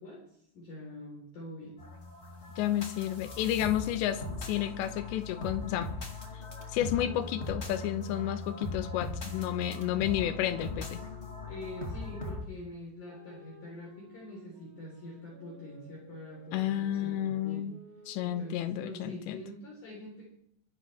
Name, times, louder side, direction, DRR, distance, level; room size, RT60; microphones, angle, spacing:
voice 1, 0.0-1.8 11.4-17.7 18.2-20.3, left 1 dB, 50° left, -3 dB, 5.0 m, -45 dB
sound 1, 1.8-12.4, left 2 dB, 30° left, 1.2 m, -40 dB
voice 2, 2.6-5.9 6.7-11.0 16.5-17.7 18.1-19.4, left 12 dB, 85° left, 10 dB, 3.2 m, -31 dB
sound 2, 6.8-12.4 13.0-18.6, right 1 dB, 40° right, 6.5 m, -55 dB
23.0 x 11.0 x 3.4 m, 0.72 s
omnidirectional pair, 5.0 m